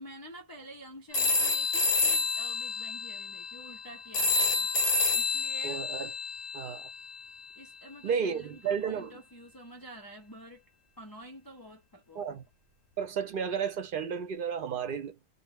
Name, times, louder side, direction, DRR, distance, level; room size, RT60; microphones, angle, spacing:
voice 1, 0.0-4.7 5.1-5.9 7.6-10.6 11.0-12.2, right 1 dB, 35° left, 0.3 m, -48 dB
sound 1, 1.1-7.3, left 3 dB, 65° left, 0.8 m, -29 dB
voice 2, 5.6-6.1 6.5-6.8 8.0-9.2 12.1-12.4 13.0-15.2, right 7 dB, 60° right, 0.7 m, -32 dB
2.0 x 2.0 x 3.4 m
omnidirectional pair, 1.1 m